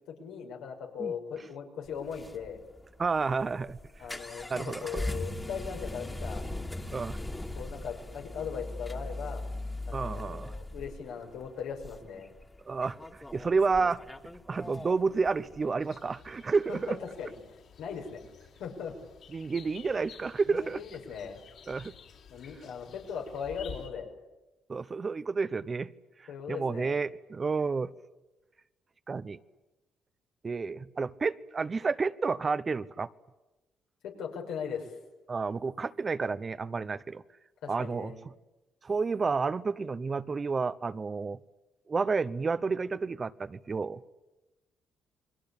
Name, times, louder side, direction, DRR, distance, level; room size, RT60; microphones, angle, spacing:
voice 1, 0.1-2.6 4.0-6.5 7.6-9.5 9.9-12.3 16.7-17.3 17.8-18.2 18.6-19.0 20.5-21.4 22.3-24.1 26.3-27.0 34.0-34.9 37.6-38.2, left 7 dB, 85° left, 5.8 m, -39 dB
sound 1, 1.9-15.7, left 1 dB, 15° left, 2.2 m, -40 dB
voice 2, 3.0-3.8 4.5-5.0 6.9-7.2 9.9-10.5 12.7-13.0 13.3-14.0 14.5-17.0 19.3-20.8 21.7-21.9 24.7-25.9 26.5-27.9 29.1-29.4 30.4-33.1 35.3-37.2 37.7-38.1 38.8-41.4 41.9-44.0, right 4 dB, 35° right, 0.9 m, -30 dB
sound 2, 15.8-23.9, left 7 dB, 65° left, 5.5 m, -51 dB
29.0 x 22.0 x 8.7 m
cardioid pair, 90°, 0 cm